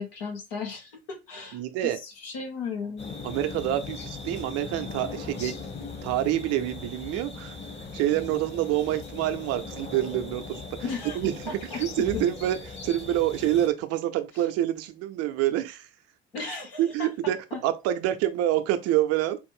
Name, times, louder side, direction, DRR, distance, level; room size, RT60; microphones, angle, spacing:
voice 1, 0.0-3.2 10.8-11.2 11.5-12.2 16.3-17.1 17.5-17.6, left 5 dB, 70° left, 1.9 m, -36 dB
voice 2, 1.5-2.0 3.2-7.6 7.9-10.6 11.1-12.6 12.8-15.9 16.4-17.4 17.6-19.4, right 13 dB, 55° right, 0.8 m, -27 dB
sound 1, 3.0-13.7, left 4 dB, 40° left, 2.0 m, -39 dB
4.8 x 2.5 x 3.6 m
hypercardioid pair, 65°, 29 cm